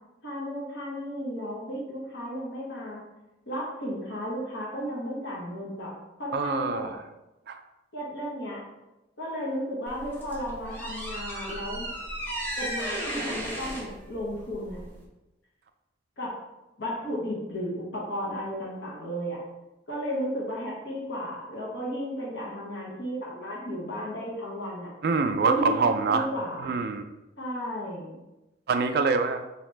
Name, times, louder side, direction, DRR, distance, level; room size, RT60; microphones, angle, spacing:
voice 1, 0.2-3.0 3.5-5.9 6.2-6.9 7.9-8.6 9.2-11.9 12.6-14.8 16.2-16.4 16.8-19.4 19.9-24.9 25.4-26.7 27.4-28.1, equal, 70° left, -4 dB, 1.0 m, -34 dB
voice 2, 6.3-7.0 7.5-7.6 11.4-11.5 25.0-26.3 26.6-27.0 28.7-29.4, right 4 dB, 55° right, 7 dB, 0.3 m, -25 dB
sound 1, 9.9-15.1, right 1 dB, 10° left, 0.6 m, -35 dB
4.0 x 2.8 x 3.2 m, 0.99 s
head